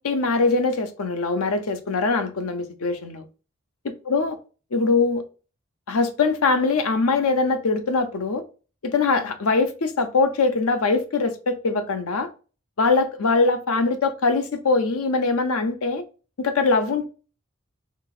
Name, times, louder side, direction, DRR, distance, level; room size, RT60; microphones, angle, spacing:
voice 1, 0.0-3.2 4.1-4.3 4.7-5.2 5.9-8.4 8.8-12.3 12.8-16.0 16.4-17.1, left 3 dB, 90° left, 0.6 m, -22 dB
4.4 x 3.0 x 2.4 m
head